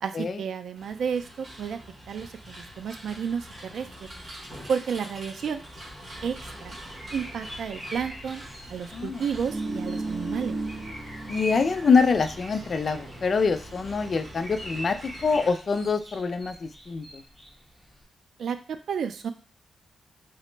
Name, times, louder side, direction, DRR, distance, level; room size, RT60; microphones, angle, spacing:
voice 1, 0.0-1.8 2.1-4.1 4.7-5.6 6.2-6.4 6.6-6.8 7.1-8.4 8.7-10.6 18.4-19.3, right 7 dB, 75° right, 9 dB, 0.3 m, -31 dB
sound 1, 0.7-15.5, right 1 dB, 45° right, 1.3 m, -44 dB
sound 2, 6.6-18.0, equal, 5° right, 1.5 m, -44 dB
sound 3, 9.1-11.8 12.1-12.2, right 2 dB, 25° right, 1.0 m, -34 dB
voice 2, 11.3-15.0 15.2-17.2, left 5 dB, 45° left, 9 dB, 0.3 m, -25 dB
3.7 x 2.0 x 3.2 m, 0.37 s
wide cardioid pair, 125°, 0 cm